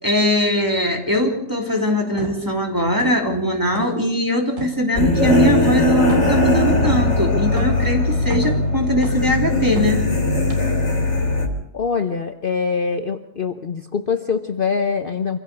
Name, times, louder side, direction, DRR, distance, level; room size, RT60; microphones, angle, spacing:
voice 1, 0.0-10.0, left 1 dB, 15° right, 1 dB, 3.2 m, -20 dB
sound 1, 2.2-2.4 3.0-3.4 3.7-4.0 4.6-4.8 5.3-5.6 6.1-6.4 6.8-7.1 7.6-7.8 8.2-8.6 9.0-9.4 9.8-10.1 10.5-10.6, right 3 dB, 85° right, 3.7 m, -31 dB
sound 2, 5.0-11.5, left 2 dB, 65° left, 3.6 m, -19 dB
voice 2, 11.7-15.4, left 5 dB, 45° left, 6 dB, 1.1 m, -23 dB
25.5 x 16.0 x 6.8 m, 0.77 s
omnidirectional pair, 1.3 m